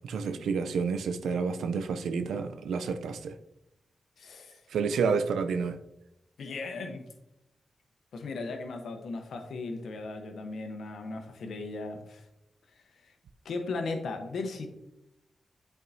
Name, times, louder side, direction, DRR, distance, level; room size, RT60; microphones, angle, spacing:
voice 1, 0.0-3.4 4.7-5.8, right 5 dB, 90° right, 9 dB, 0.4 m, -29 dB
voice 2, 4.2-4.6 6.4-7.1 8.1-12.2 13.0-13.1 13.4-14.7, left 3 dB, 80° left, 4 dB, 0.9 m, -37 dB
8.4 x 4.6 x 2.6 m, 0.86 s
supercardioid pair, 45°, 0 cm